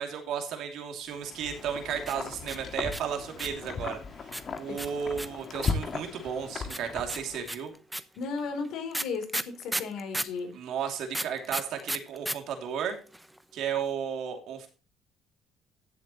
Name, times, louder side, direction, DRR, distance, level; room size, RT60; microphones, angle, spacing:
voice 1, 0.0-7.7 10.5-13.0 13.5-14.7, right 7 dB, 70° right, 4 dB, 2.7 m, -34 dB
Wind, 1.1-7.6, left 4 dB, 40° left, 1.7 m, -37 dB
sound 1, 2.0-3.7 4.3-5.9 6.7-10.4 11.1-12.4 12.6-12.7 12.9-13.4, right 1 dB, 5° right, 0.8 m, -34 dB
voice 2, 8.2-10.6, left 4 dB, 75° left, 5 dB, 3.5 m, -35 dB
15.5 x 7.3 x 3.0 m, 0.34 s
cardioid pair, 100°, 0 cm